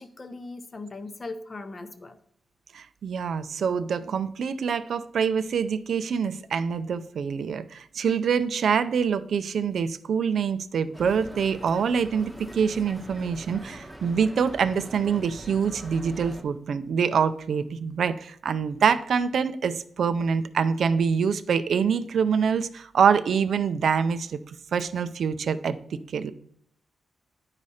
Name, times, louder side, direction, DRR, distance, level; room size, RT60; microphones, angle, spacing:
voice 1, 0.0-2.2, left 3 dB, 25° left, 9 dB, 0.7 m, -39 dB
voice 2, 2.7-24.4 24.7-25.8 26.1-26.3, right 6 dB, 60° right, 12 dB, 0.5 m, -25 dB
sound 1, 10.9-16.4, equal, ahead, 1.1 m, -43 dB
10.5 x 4.9 x 4.2 m, 0.67 s
wide cardioid pair, 170°, 0 cm